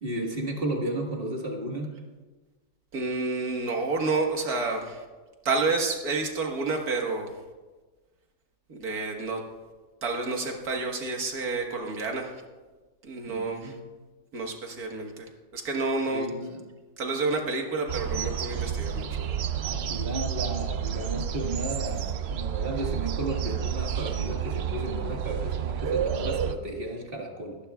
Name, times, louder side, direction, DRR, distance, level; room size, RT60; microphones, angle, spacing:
voice 1, 0.0-2.0 13.3-13.8 16.0-16.6 19.6-27.6, right 1 dB, 40° right, 0 dB, 1.9 m, -33 dB
voice 2, 2.9-5.1 5.5-7.3 8.7-9.5 10.0-12.4 13.0-13.8 14.3-16.3 17.0-19.4, right 3 dB, 80° right, 2 dB, 2.0 m, -29 dB
sound 1, 17.9-26.5, right 8 dB, 60° right, 0.7 m, -30 dB
23.0 x 11.0 x 2.4 m, 1.3 s
omnidirectional pair, 1.6 m